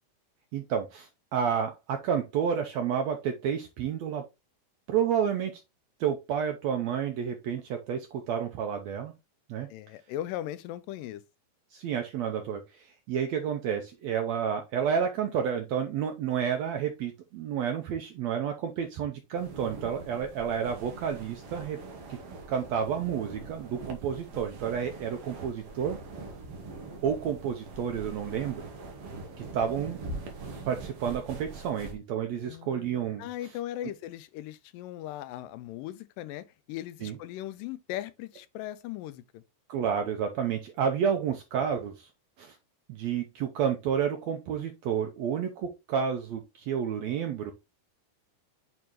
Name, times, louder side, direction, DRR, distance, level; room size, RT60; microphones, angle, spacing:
voice 1, 0.5-4.2 4.9-5.5 6.0-9.1 9.5-9.7 11.7-21.8 22.1-22.2 22.5-26.0 27.0-28.7 29.4-30.0 30.7-33.3 37.0-37.2 39.7-42.1 42.4-42.5 42.9-47.5, right 8 dB, 80° right, 1.5 m, -30 dB
voice 2, 9.7-11.2 32.5-32.9 33.2-39.4, left 13 dB, 85° left, 2.3 m, -38 dB
sound 1, 19.3-32.0, right 3 dB, 60° right, 1.7 m, -43 dB
8.7 x 3.6 x 3.0 m
omnidirectional pair, 3.8 m